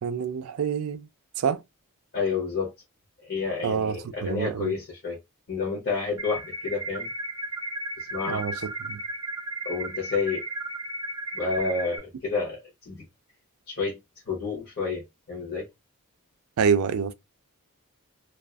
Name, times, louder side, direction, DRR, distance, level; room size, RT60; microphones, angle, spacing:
voice 1, 0.0-1.1 1.4-1.6 3.6-4.7 8.3-9.0 16.6-17.1, right 6 dB, 70° right, 0.3 m, -27 dB
voice 2, 2.1-2.7 3.2-5.2 5.5-7.1 8.0-8.4 9.6-10.4 11.3-13.1 13.7-14.0 14.3-15.7, left 4 dB, 45° left, 0.8 m, -30 dB
sound 1, 6.2-12.0, right 1 dB, 15° right, 0.6 m, -34 dB
2.4 x 2.3 x 2.3 m
head